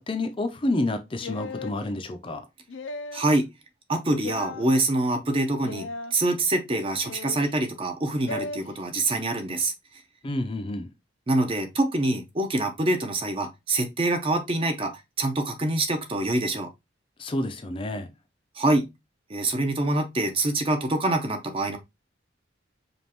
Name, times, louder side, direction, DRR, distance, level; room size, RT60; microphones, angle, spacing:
voice 1, 0.0-2.4 10.2-10.9 17.2-18.1, left 2 dB, 30° left, 0.5 m, -29 dB
sound 1, 1.2-1.8 2.7-3.3 4.2-4.7 5.6-6.1 7.0-7.5 8.3-8.6, left 3 dB, 85° left, 0.4 m, -36 dB
voice 2, 3.1-3.5 3.9-9.7 11.3-16.7 18.6-18.9 19.3-21.8, right 2 dB, 30° right, 0.6 m, -25 dB
5.2 x 2.4 x 2.9 m
head